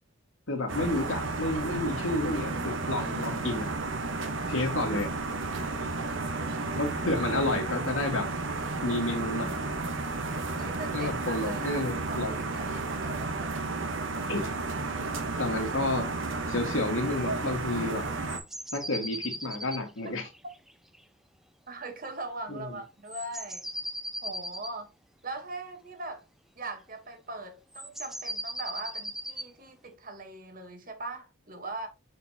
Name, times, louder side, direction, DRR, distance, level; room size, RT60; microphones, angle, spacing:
voice 1, 0.5-3.7 4.5-5.1 6.7-8.3 8.8-9.6 10.9-12.3 14.3-14.5 15.4-16.1 16.5-18.1 18.7-20.3 22.5-22.8, left 2 dB, 80° left, 1.9 m, -30 dB
sound 1, 0.7-18.4, right 3 dB, 70° right, 1.1 m, -32 dB
voice 2, 10.6-13.6 21.7-23.7 24.2-24.9 25.2-26.2 26.6-31.9, right 2 dB, 40° right, 1.3 m, -41 dB
sound 2, 18.3-21.0 23.1-24.7 27.7-29.5, equal, ahead, 0.4 m, -38 dB
6.4 x 5.3 x 2.9 m
head